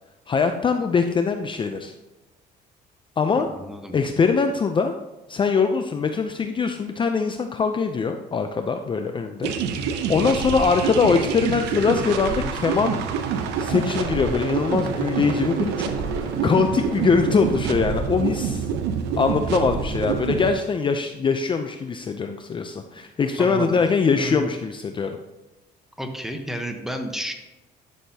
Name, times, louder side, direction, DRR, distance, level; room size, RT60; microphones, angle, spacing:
voice 1, 0.3-1.9 3.2-3.5 3.9-4.9 5.3-13.0 13.6-18.6 19.2-25.2, left 5 dB, 30° left, 6 dB, 0.5 m, -22 dB
voice 2, 3.3-4.0 23.4-23.8 24.1-24.5 26.0-27.3, right 1 dB, ahead, 4 dB, 1.0 m, -32 dB
sound 1, 9.4-20.5, right 6 dB, 85° right, 0.8 m, -27 dB
11.0 x 6.5 x 2.8 m, 1.1 s
cardioid pair, 110°, 17 cm